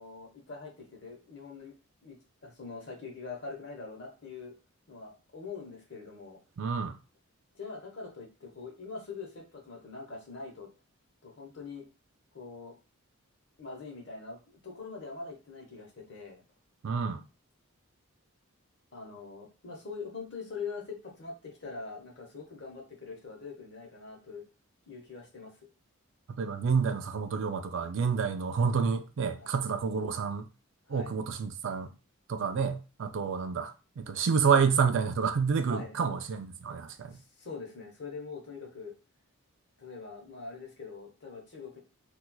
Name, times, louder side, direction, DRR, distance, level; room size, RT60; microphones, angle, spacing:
voice 1, 0.0-1.7 2.0-2.2 2.4-4.5 4.9-6.4 7.5-10.7 11.2-11.9 12.3-12.8 13.6-16.4 18.9-24.4 24.9-25.5 29.4-29.5 30.9-31.1 35.6-35.9 37.1-38.9 39.8-41.8, left 4 dB, 55° left, 1.0 m, -43 dB
voice 2, 6.6-6.9 16.8-17.2 26.4-30.5 30.9-31.9 32.3-37.2, right 6 dB, 55° right, 0.3 m, -29 dB
4.2 x 2.4 x 2.3 m
head